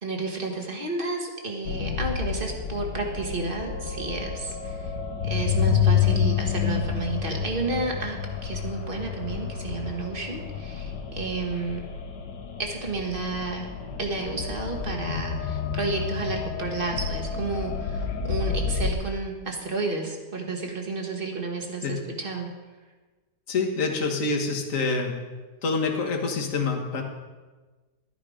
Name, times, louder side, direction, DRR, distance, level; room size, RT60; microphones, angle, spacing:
voice 1, 0.0-4.9 5.2-11.8 12.6-13.7 14.0-22.5, right 3 dB, 35° right, 2 dB, 1.6 m, -31 dB
sound 1, 1.7-18.9, left 7 dB, 90° left, 1.6 m, -29 dB
voice 2, 23.5-25.1 25.6-27.0, left 4 dB, 50° left, 2 dB, 1.8 m, -26 dB
12.5 x 9.4 x 5.0 m, 1.3 s
omnidirectional pair, 1.8 m